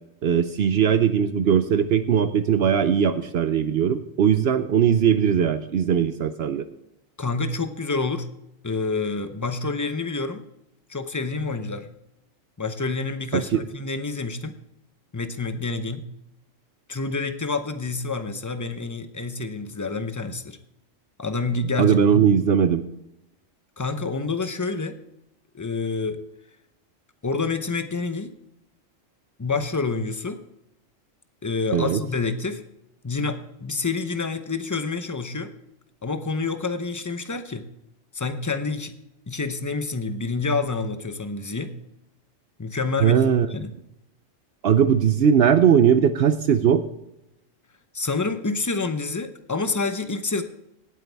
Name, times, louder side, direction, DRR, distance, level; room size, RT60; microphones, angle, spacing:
voice 1, 0.2-6.6 13.3-13.6 21.8-22.8 31.7-32.0 43.0-43.5 44.6-46.8, right 8 dB, 60° right, 11 dB, 0.8 m, -19 dB
voice 2, 7.2-8.3 8.6-10.4 10.9-11.9 12.6-14.6 15.1-16.0 16.9-20.6 21.2-22.2 23.8-25.0 25.5-26.2 27.2-28.3 29.4-30.4 31.4-32.6 33.0-35.5 36.0-37.6 38.1-38.9 39.3-41.7 42.6-43.2 43.5-43.7 47.9-50.4, left 3 dB, 20° left, 9 dB, 0.6 m, -28 dB
18.0 x 8.1 x 3.4 m, 0.86 s
omnidirectional pair, 1.4 m